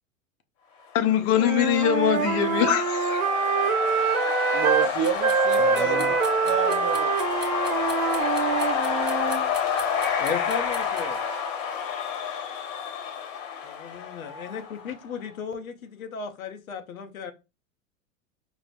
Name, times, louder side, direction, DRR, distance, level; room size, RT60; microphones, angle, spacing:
voice 1, 0.9-3.2 3.8-3.9, left 10 dB, 35° left, 0.6 m, -23 dB
sound 1, 1.2-15.0, left 7 dB, 70° left, 1.1 m, -29 dB
Wind instrument woodwind instrument, 1.3-4.9 5.2-9.4, right 6 dB, 90° right, 0.7 m, -25 dB
voice 2, 4.5-6.2 6.4-7.1, right 9 dB, 30° right, 0.5 m, -28 dB
sound 2, 5.0-11.0, right 2 dB, 10° right, 0.8 m, -40 dB
voice 3, 5.6-6.1 10.2-11.2 13.6-17.3, left 6 dB, 85° left, 0.7 m, -35 dB
4.9 x 2.0 x 2.5 m
hypercardioid pair, 100°, 41 cm